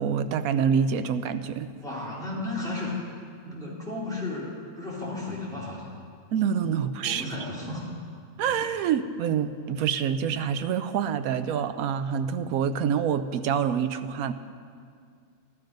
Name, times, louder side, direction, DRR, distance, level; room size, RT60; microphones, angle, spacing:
voice 1, 0.0-1.7 6.3-7.3 8.4-14.3, right 7 dB, 90° right, 10 dB, 1.1 m, -26 dB
voice 2, 1.8-3.0 3.4-6.0 7.0-7.9, left 2 dB, ahead, -7 dB, 3.2 m, -34 dB
13.5 x 12.0 x 5.2 m, 2.2 s
omnidirectional pair, 1.5 m